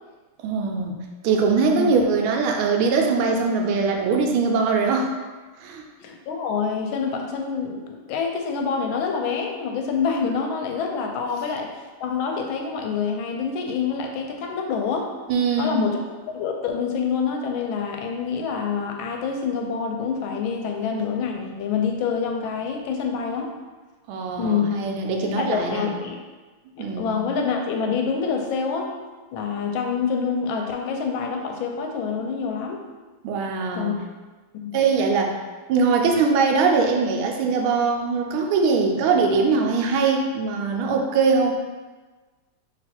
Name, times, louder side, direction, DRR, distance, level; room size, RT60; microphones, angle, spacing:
voice 1, 0.4-1.0 1.2-5.1 5.6-5.8 15.3-15.9 24.1-25.9 26.8-27.2 33.2-34.0 34.7-35.4 35.7-41.6, right 4 dB, 80° right, 2 dB, 1.4 m, -22 dB
voice 2, 6.0-15.1 15.6-16.0 16.3-23.5 24.4-24.8 25.2-26.2 26.8-28.9 29.3-32.8 33.7-33.9 34.6-34.8, left 6 dB, 75° left, 2 dB, 1.3 m, -26 dB
3.1 x 2.9 x 4.2 m, 1.3 s
omnidirectional pair, 2.4 m